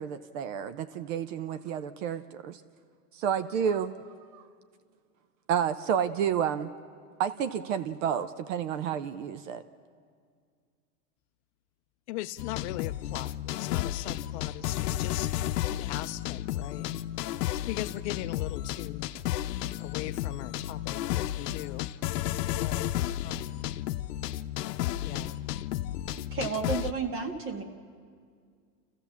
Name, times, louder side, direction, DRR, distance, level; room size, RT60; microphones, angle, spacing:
voice 1, 0.0-2.6 3.1-4.0 4.3-4.4 5.5-6.7 7.2-9.6, right 8 dB, 55° right, 13 dB, 0.8 m, -30 dB
voice 2, 12.1-15.3 15.7-16.9 17.5-19.1 19.8-21.9 22.5-22.9 23.2-23.7 25.0-25.4, left 15 dB, 45° left, 10 dB, 0.5 m, -39 dB
sound 1, 12.4-26.9, left 13 dB, 80° left, 0.7 m, -32 dB
voice 3, 26.2-27.6, right 4 dB, 25° right, 6 dB, 1.7 m, -32 dB
29.0 x 14.5 x 7.2 m, 2.1 s
supercardioid pair, 135°, 48 cm